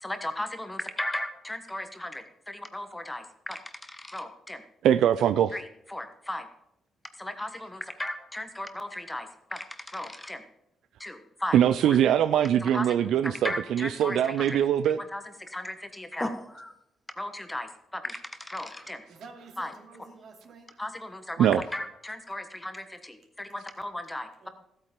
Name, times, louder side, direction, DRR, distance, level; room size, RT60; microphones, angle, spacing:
voice 1, 0.0-4.6 5.5-6.5 7.2-10.4 11.0-12.0 12.6-12.9 13.2-14.6 15.0-16.7 17.2-19.0 19.6-19.7 20.8-24.5, left 1 dB, 10° left, 8 dB, 1.3 m, -36 dB
voice 2, 4.8-5.5 11.5-15.0 21.4-21.6, right 10 dB, 80° right, 13 dB, 0.4 m, -22 dB
voice 3, 19.1-20.7 24.4-24.5, right 4 dB, 60° right, 3 dB, 2.6 m, -49 dB
14.0 x 8.8 x 5.2 m, 0.82 s
cardioid pair, 90°, 0 cm